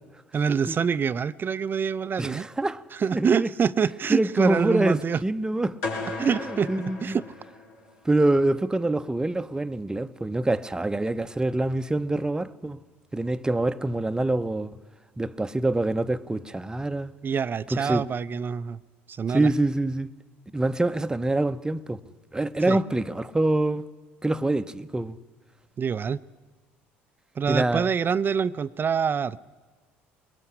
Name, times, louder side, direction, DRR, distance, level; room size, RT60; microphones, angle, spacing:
voice 1, 0.3-2.5 2.9-5.2 6.2-6.7 7.0-7.2 17.2-18.8 19.1-19.5 22.7-22.8 25.8-26.2 27.4-29.4, right 6 dB, 35° right, 0.6 m, -25 dB
voice 2, 2.2-2.8 3.1-3.5 4.1-5.8 6.7-7.2 8.0-12.8 13.1-14.7 15.2-17.1 17.7-18.0 19.3-20.1 20.5-22.0 22.3-23.9 24.2-25.2 27.5-27.9, right 2 dB, 10° right, 0.9 m, -25 dB
sound 1, 5.8-7.9, left 3 dB, 80° left, 3.9 m, -35 dB
21.5 x 20.0 x 9.8 m
hypercardioid pair, 70°, 6 cm